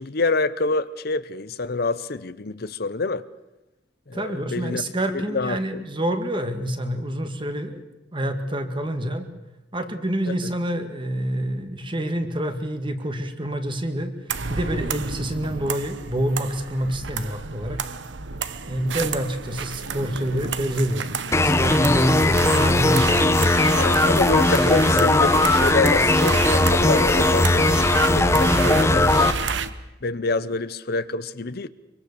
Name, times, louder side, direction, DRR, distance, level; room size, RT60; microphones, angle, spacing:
voice 1, 0.0-3.2 4.1-4.8 5.3-5.8 10.3-10.5 23.8-29.3 30.0-31.7, left 3 dB, 55° left, 14 dB, 0.8 m, -26 dB
voice 2, 4.1-7.8 8.1-9.3 9.7-14.1 14.5-17.8 18.7-21.1 21.4-23.3 28.3-28.4, right 1 dB, 25° right, 7 dB, 1.9 m, -27 dB
sound 1, 14.3-29.7, right 5 dB, 80° right, 1.1 m, -30 dB
sound 2, 21.3-29.3, left 2 dB, 15° left, 1.1 m, -18 dB
24.0 x 24.0 x 6.9 m, 0.98 s
head